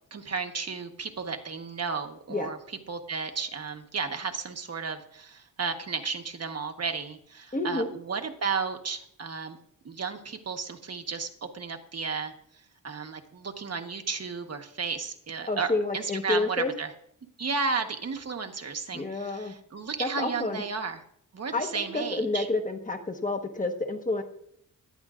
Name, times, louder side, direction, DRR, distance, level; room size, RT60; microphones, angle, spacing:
voice 1, 0.1-9.6 9.8-11.3 11.5-12.3 12.8-16.9 17.4-21.0 21.3-22.5, right 5 dB, 50° right, 5 dB, 1.2 m, -33 dB
voice 2, 7.5-7.9 15.5-16.7 18.9-19.5 20.0-20.6 21.5-24.2, left 2 dB, 25° left, 5 dB, 1.2 m, -29 dB
17.5 x 12.0 x 2.5 m, 0.70 s
wide cardioid pair, 155°, 33 cm